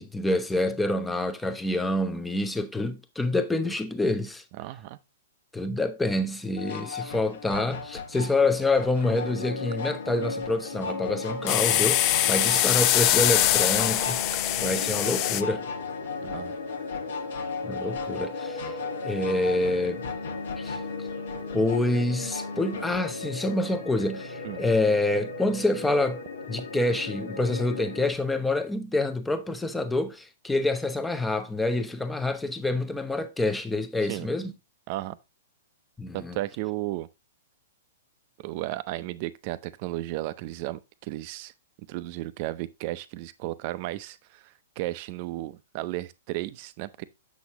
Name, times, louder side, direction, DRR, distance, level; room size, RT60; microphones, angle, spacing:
voice 1, 0.0-4.4 5.5-14.2 14.6-15.7 17.6-18.8 19.0-20.0 20.6-21.1 21.5-26.2 26.5-34.5 36.0-36.4, left 2 dB, 5° left, 0.8 m, -27 dB
voice 2, 4.6-5.0 16.2-16.5 24.4-24.6 34.0-34.3 34.9-35.2 36.1-37.1 38.4-41.5 41.9-44.4 44.8-47.0, right 17 dB, 45° right, 0.6 m, -34 dB
sound 1, 6.6-23.1, left 5 dB, 65° left, 1.3 m, -38 dB
sound 2, 9.0-28.1, left 3 dB, 85° left, 1.6 m, -36 dB
sound 3, 11.5-15.4, left 14 dB, 35° left, 0.5 m, -23 dB
7.2 x 6.2 x 2.9 m
hypercardioid pair, 125°, 0 cm